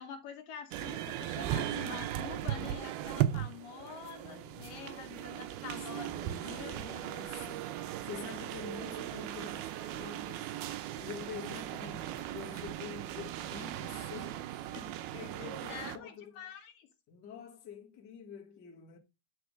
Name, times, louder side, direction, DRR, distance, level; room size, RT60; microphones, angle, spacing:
voice 1, 0.0-7.1 15.6-16.9, left 7 dB, 70° left, 2.6 m, -46 dB
sound 1, 0.7-16.0, right 12 dB, 85° right, 2.6 m, -38 dB
voice 2, 4.2-4.7 5.6-10.5 11.0-14.5 14.7-16.4 17.1-19.0, left 7 dB, 40° left, 1.6 m, -47 dB
10.0 x 4.4 x 6.4 m
omnidirectional pair, 4.4 m